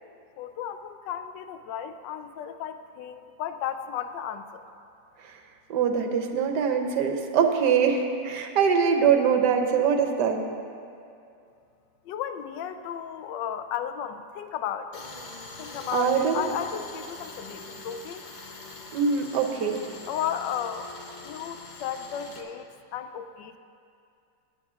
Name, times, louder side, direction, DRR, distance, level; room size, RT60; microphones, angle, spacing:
voice 1, 0.4-4.6 12.0-15.0 15.6-18.2 20.1-20.9 21.2-23.6, left 9 dB, 85° left, 9 dB, 1.2 m, -34 dB
voice 2, 5.7-10.4 15.9-16.5 18.9-19.8, right 6 dB, 70° right, 4 dB, 1.4 m, -23 dB
Tools, 14.9-22.4, left 3 dB, 60° left, 0.4 m, -43 dB
18.0 x 9.5 x 2.4 m, 2.5 s
omnidirectional pair, 1.9 m